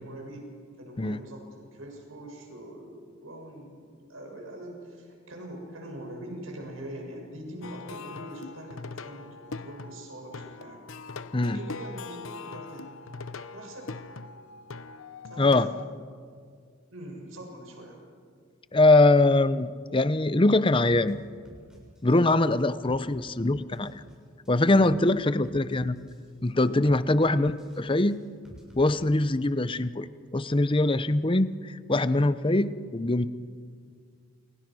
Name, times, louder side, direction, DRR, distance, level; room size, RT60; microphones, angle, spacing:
voice 1, 0.0-3.8 4.1-10.8 11.4-13.0 13.5-14.0 15.3-15.8 16.9-18.0 27.2-27.6, right 1 dB, 90° right, 2 dB, 6.9 m, -43 dB
Plucked string instrument, 7.6-15.9, left 4 dB, 85° left, 0.9 m, -41 dB
voice 2, 15.4-15.7 18.7-21.2 22.0-24.0 24.5-26.0 26.4-27.5 27.8-28.2 28.8-30.1 30.3-33.3, left 2 dB, 25° left, 14 dB, 0.7 m, -22 dB
sound 1, 21.1-21.2 21.4-22.2 22.4-23.1 23.4-24.1 24.4-25.1 25.4-26.2 26.4-27.1 27.4-28.8, equal, 5° right, 7.1 m, -51 dB
29.5 x 28.0 x 6.3 m, 2.1 s
head